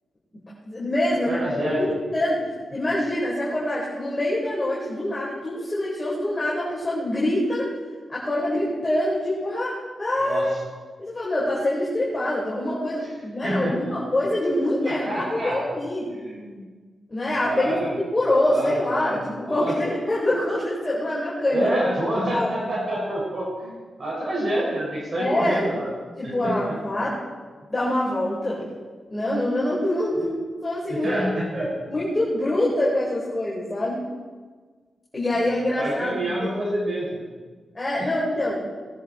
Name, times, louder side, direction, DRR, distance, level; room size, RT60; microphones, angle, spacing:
voice 1, 0.6-2.4 2.7-7.7 8.1-10.5 11.0-16.1 17.1-21.7 22.3-22.5 25.2-25.7 26.2-27.2 27.7-28.6 29.1-30.3 30.6-31.1 31.9-34.0 35.1-36.5 37.7-38.6, left 1 dB, 25° left, -6 dB, 4.6 m, -25 dB
voice 2, 1.3-2.0 10.2-10.6 13.4-13.9 14.8-15.6 16.1-16.6 17.4-17.9 18.4-19.7 21.5-23.7 24.0-25.9 26.2-26.6 30.1-30.3 30.9-31.7 35.8-37.2 38.0-38.1, right 1 dB, 50° right, -4 dB, 5.6 m, -27 dB
19.5 x 10.5 x 4.4 m, 1.4 s
cardioid pair, 60°, 0 cm